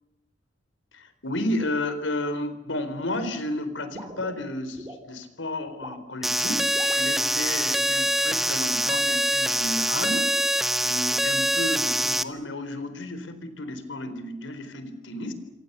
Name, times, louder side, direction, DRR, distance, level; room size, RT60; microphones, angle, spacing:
voice 1, 0.9-10.3 10.8-15.3, left 1 dB, 80° left, 10 dB, 4.2 m, -32 dB
sound 1, 3.9-5.0 5.7-6.1 6.7-7.1, right 1 dB, 20° right, 4.0 m, -41 dB
sound 2, 6.2-12.2, equal, ahead, 1.0 m, -24 dB
27.5 x 26.0 x 6.9 m, 0.96 s
head